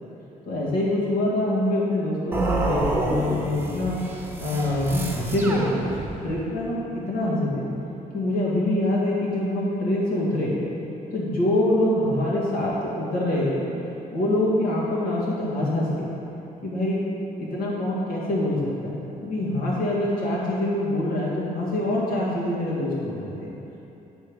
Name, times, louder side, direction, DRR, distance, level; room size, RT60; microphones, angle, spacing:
voice 1, 0.4-4.0 4.4-6.0 6.2-7.7 8.1-10.5 11.1-13.6 14.1-16.1 16.6-17.0 17.4-23.5, left 1 dB, 80° left, -6 dB, 1.8 m, -25 dB
sound 1, 2.3-6.4, right 2 dB, 15° right, 1.0 m, -28 dB
8.9 x 4.7 x 5.0 m, 3.0 s
cardioid pair, 130°, 15 cm